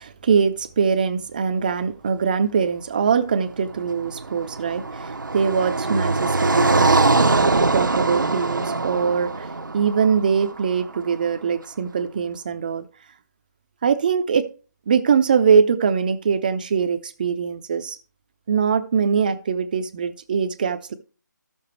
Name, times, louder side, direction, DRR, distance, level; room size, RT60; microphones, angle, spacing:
voice 1, 0.0-9.5 9.7-12.9 13.8-14.5 14.9-18.0 18.5-20.9, right 6 dB, 25° right, 0.5 m, -22 dB
Car passing by, 3.8-11.0, right 3 dB, 90° right, 0.8 m, -22 dB
14.0 x 6.9 x 3.1 m
figure-of-eight pair, 165°, 10 cm